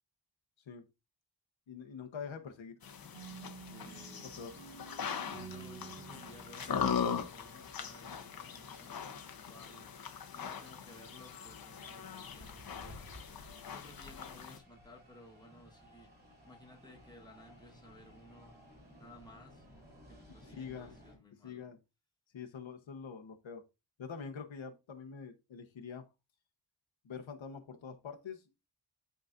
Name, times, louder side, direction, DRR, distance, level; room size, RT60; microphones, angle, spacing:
voice 1, 1.7-2.8 4.4-4.5 20.6-21.0 21.4-21.8 22.3-23.6 24.0-26.1 27.0-28.4, left 6 dB, 80° left, 1.1 m, -45 dB
sound 1, 2.8-14.6, left 7 dB, 50° left, 0.8 m, -40 dB
sound 2, 3.1-8.0, right 7 dB, 80° right, 0.9 m, -52 dB
voice 2, 3.7-4.6 5.2-9.9 10.3-13.1 13.7-16.1 16.4-18.6 18.9-19.6 20.1-21.7, left 1 dB, 10° left, 1.3 m, -57 dB
sound 3, 12.2-21.2, left 1 dB, 20° right, 2.5 m, -56 dB
10.5 x 4.0 x 2.5 m
wide cardioid pair, 175°, 46 cm